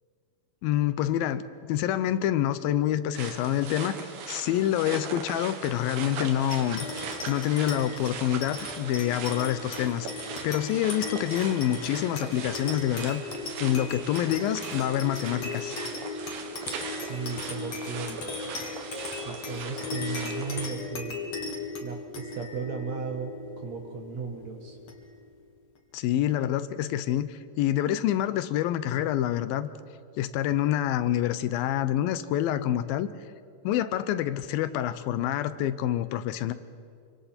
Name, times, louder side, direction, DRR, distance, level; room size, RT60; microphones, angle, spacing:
voice 1, 0.6-7.0 7.3-10.1 10.4-13.2 13.6-15.8 25.9-29.7 30.2-33.1 33.6-36.5, left 12 dB, 80° left, 13 dB, 2.5 m, -27 dB
sound 1, 3.1-20.7, right 6 dB, 80° right, 3.3 m, -39 dB
sound 2, 6.5-25.3, left 4 dB, 50° left, 2.8 m, -37 dB
voice 2, 16.9-18.2 19.2-21.2 21.8-24.8, right 5 dB, 60° right, 4 dB, 2.0 m, -36 dB
27.5 x 25.0 x 4.3 m, 2.3 s
omnidirectional pair, 4.3 m